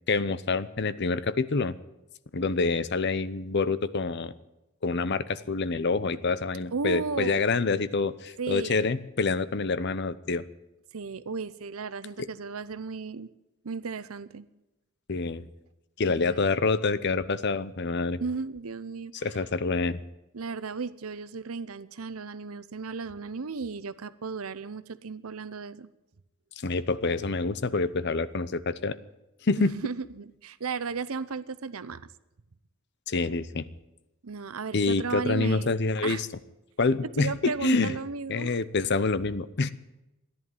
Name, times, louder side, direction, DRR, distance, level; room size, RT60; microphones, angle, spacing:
voice 1, 0.1-1.8 2.3-4.3 4.8-10.4 15.1-15.5 16.0-18.2 19.2-20.0 26.6-29.0 29.4-29.7 33.1-33.6 34.7-36.3 36.8-38.0 38.3-39.7, left 3 dB, 50° left, 15 dB, 0.7 m, -27 dB
voice 2, 6.7-7.4 8.4-8.9 10.9-13.3 13.6-14.5 16.1-16.5 18.2-19.3 20.3-25.9 29.6-32.1 34.2-35.7 36.0-36.2 37.2-38.5, right 5 dB, 80° right, 15 dB, 0.7 m, -35 dB
14.5 x 10.5 x 9.3 m, 0.95 s
head